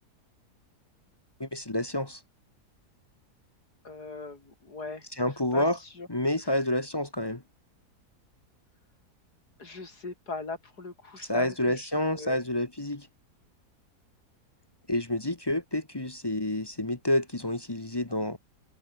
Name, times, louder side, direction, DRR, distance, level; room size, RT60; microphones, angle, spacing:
voice 1, 1.4-2.2 5.2-5.8 6.1-7.4 11.3-13.1 14.9-18.4, left 1 dB, 20° left, 1.0 m, -28 dB
voice 2, 3.8-5.1 5.5-6.1 6.4-6.6 9.6-12.4, left 3 dB, 80° left, 4.6 m, -39 dB
omnidirectional pair, 1.7 m